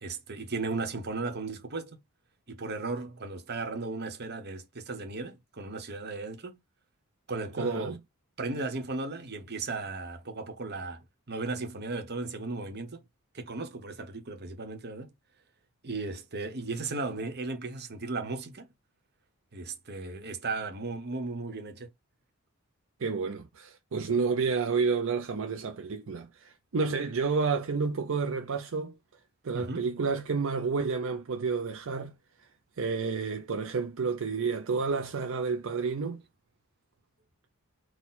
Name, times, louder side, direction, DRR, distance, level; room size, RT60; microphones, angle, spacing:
voice 1, 0.0-2.0 2.5-6.6 7.3-8.0 8.4-13.0 13.3-15.1 15.8-18.7 19.5-21.9 29.5-29.9, right 3 dB, 50° right, 1.1 m, -36 dB
voice 2, 7.6-8.0 23.0-29.0 29.4-32.1 32.4-32.5 32.8-36.2, right 4 dB, 65° right, 0.6 m, -30 dB
4.3 x 2.3 x 4.0 m
head